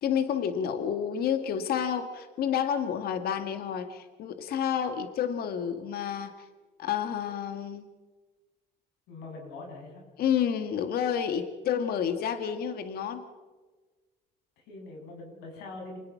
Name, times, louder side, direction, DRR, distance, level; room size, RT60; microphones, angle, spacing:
voice 1, 0.0-6.3 6.8-7.8 10.2-13.2, left 8 dB, 65° left, 8 dB, 1.8 m, -29 dB
voice 2, 9.1-10.0 14.6-16.0, left 2 dB, 90° left, 1 dB, 7.9 m, -43 dB
28.5 x 19.5 x 5.9 m, 1.3 s
cardioid pair, 110°, 17 cm